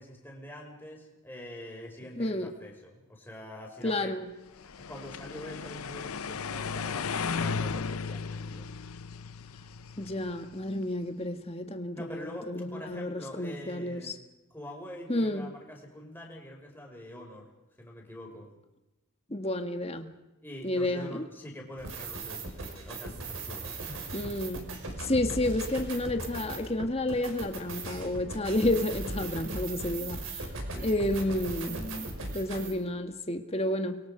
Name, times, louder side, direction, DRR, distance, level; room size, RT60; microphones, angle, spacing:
voice 1, 0.0-4.1 4.8-8.7 11.9-14.2 14.5-17.5 17.8-18.5 20.4-24.0 30.5-30.9, left 1 dB, 10° left, 5.6 m, -45 dB
voice 2, 2.2-2.5 3.8-4.3 10.0-14.1 15.1-15.5 19.3-20.1 20.6-21.2 24.1-24.7 25.0-30.4 30.8-34.0, left 1 dB, 25° left, 1.8 m, -31 dB
sound 1, 4.6-10.7, left 5 dB, 75° left, 0.7 m, -35 dB
sound 2, 21.8-32.7, right 2 dB, 65° right, 5.5 m, -38 dB
30.0 x 23.0 x 5.2 m
head